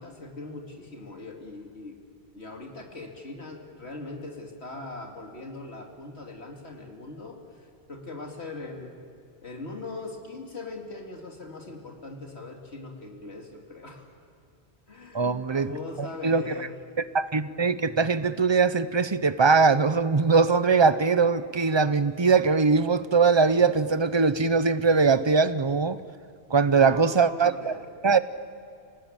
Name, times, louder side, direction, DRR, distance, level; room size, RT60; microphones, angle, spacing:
voice 1, 0.0-2.0 2.3-8.9 9.4-14.0 14.9-16.8 26.7-27.8, left 3 dB, 80° left, 2.8 m, -40 dB
voice 2, 15.1-15.7 16.0-16.4 17.1-26.0 26.5-27.7 28.0-28.2, right 4 dB, 30° right, 0.7 m, -21 dB
29.0 x 19.5 x 8.9 m
omnidirectional pair, 1.1 m